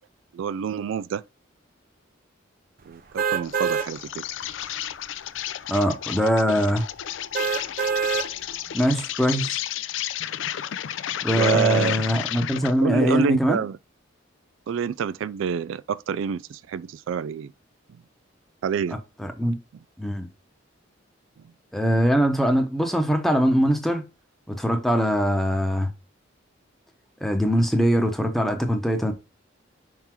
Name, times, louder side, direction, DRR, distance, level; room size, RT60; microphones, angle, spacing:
voice 1, 0.3-1.2 2.9-4.2 11.4-11.9 12.8-13.8 14.7-17.5 18.6-19.0, right 7 dB, 80° right, 0.3 m, -27 dB
sound 1, 3.2-3.9 4.4-4.5 7.3-8.3 8.8-8.9, right 6 dB, 45° right, 0.7 m, -25 dB
Insect, 3.4-12.8, left 11 dB, 70° left, 0.4 m, -32 dB
voice 2, 5.7-6.9 8.7-9.6 11.2-13.6 19.2-19.6 20.0-20.3 21.7-24.0 24.5-25.9 27.2-29.1, equal, ahead, 0.9 m, -22 dB
5.5 x 3.8 x 4.4 m
head